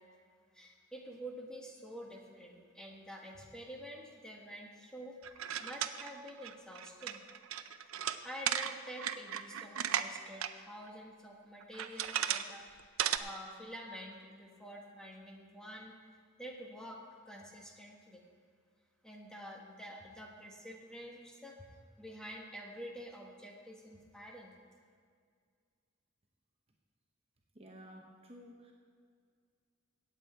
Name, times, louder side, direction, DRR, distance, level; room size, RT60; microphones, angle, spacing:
voice 1, 0.5-7.2 8.2-15.9 16.4-17.0 17.3-18.2 19.0-21.5 22.0-24.5, equal, 5° left, -1 dB, 1.5 m, -48 dB
sound 1, 5.2-10.5 10.9-11.0 11.6-12.5 12.8-13.2, right 10 dB, 85° right, 0.5 m, -35 dB
voice 2, 27.5-28.7, equal, 30° right, 0 dB, 1.0 m, -53 dB
16.5 x 8.2 x 4.5 m, 2.1 s
head